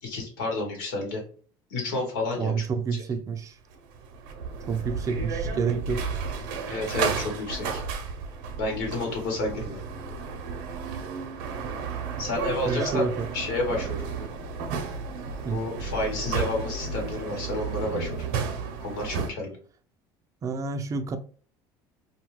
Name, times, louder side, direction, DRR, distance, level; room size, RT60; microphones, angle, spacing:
voice 1, 0.0-1.2 1.7-2.7 6.7-7.8 8.6-9.8 12.2-14.0 15.5-18.2 18.8-19.6, left 2 dB, 85° left, 1.4 m, -30 dB
voice 2, 2.4-3.6 4.7-6.1 12.6-13.3 15.4-15.6 20.4-21.2, right 5 dB, 30° right, 0.4 m, -29 dB
sound 1, 3.7-19.3, right 5 dB, 80° right, 0.6 m, -32 dB
2.6 x 2.3 x 3.0 m
supercardioid pair, 105°, 10 cm